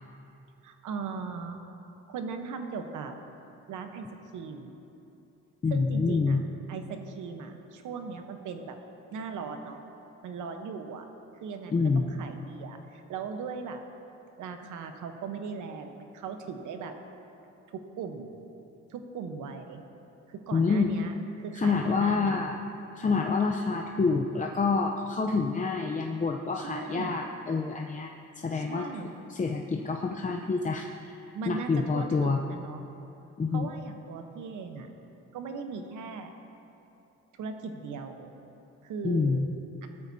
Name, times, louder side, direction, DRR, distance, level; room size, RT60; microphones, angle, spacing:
voice 1, 0.6-1.6 2.1-3.1 3.7-4.0 4.3-4.8 5.7-6.4 6.7-8.8 9.1-9.8 10.2-11.0 11.4-13.8 14.4-16.9 17.7-18.3 18.9-19.8 20.3-22.4 26.6-27.2 28.5-29.1 31.3-32.9 33.5-34.9 35.3-36.3 37.4-38.3 38.8-39.4 39.8-39.9, right 5 dB, 80° right, 6 dB, 1.1 m, -38 dB
voice 2, 5.6-6.4 11.7-12.1 20.5-20.9 21.5-22.6 23.0-28.1 28.4-28.9 29.3-30.9 31.5-32.4 33.4-33.7 39.0-39.5, left 4 dB, 25° left, 1 dB, 0.7 m, -27 dB
16.5 x 13.0 x 2.8 m, 2.9 s
cardioid pair, 90°, 30 cm